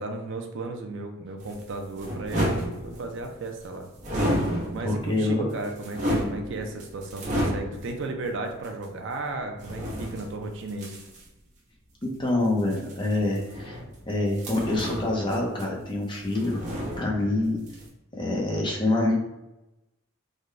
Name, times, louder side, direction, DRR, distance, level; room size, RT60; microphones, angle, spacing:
voice 1, 0.0-3.9 4.7-11.0, right 2 dB, 60° right, 4 dB, 0.5 m, -35 dB
sound 1, 1.4-3.3 4.0-5.1 5.5-8.0 8.6-8.7 9.6-11.2 12.6-14.0 14.3-16.0 16.2-17.4 17.7-17.9, equal, 35° right, 0.9 m, -31 dB
voice 2, 4.8-5.5 12.0-13.8 14.1-16.6 17.0-17.6 18.1-19.2, left 2 dB, 25° left, -1 dB, 0.7 m, -26 dB
3.7 x 2.2 x 3.2 m, 0.96 s
head